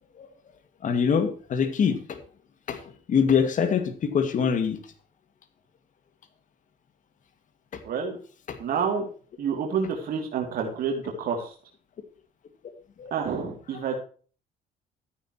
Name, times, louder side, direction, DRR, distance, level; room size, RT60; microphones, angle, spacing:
voice 1, 0.8-2.2 2.7-2.8 3.1-4.8 8.5-8.6 13.0-13.1, left 6 dB, 50° left, 8 dB, 2.2 m, -24 dB
voice 2, 7.8-8.2 8.6-9.0 9.4-11.5 13.1-14.0, right 6 dB, 60° right, 1 dB, 2.9 m, -28 dB
13.5 x 10.0 x 3.1 m, 0.40 s
cardioid pair, 110°, 17 cm